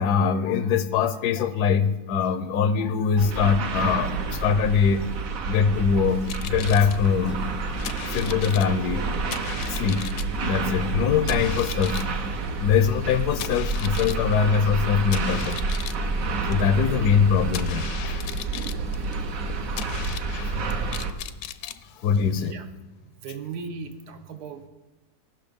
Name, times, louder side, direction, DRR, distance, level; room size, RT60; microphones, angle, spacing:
voice 1, 0.0-5.1 5.5-7.4 8.0-9.0 9.7-12.1 12.6-15.6 16.5-17.9 21.6-21.7 22.0-22.5, left 6 dB, 85° left, 13 dB, 1.3 m, -22 dB
sound 1, 3.2-21.1, right 3 dB, 65° right, 1.3 m, -29 dB
sound 2, 6.1-22.5, left 11 dB, 70° left, 0.9 m, -39 dB
voice 2, 22.3-22.7 23.0-24.7, right 5 dB, 85° right, 7 dB, 1.5 m, -37 dB
16.5 x 6.0 x 5.2 m, 1.1 s
omnidirectional pair, 1.6 m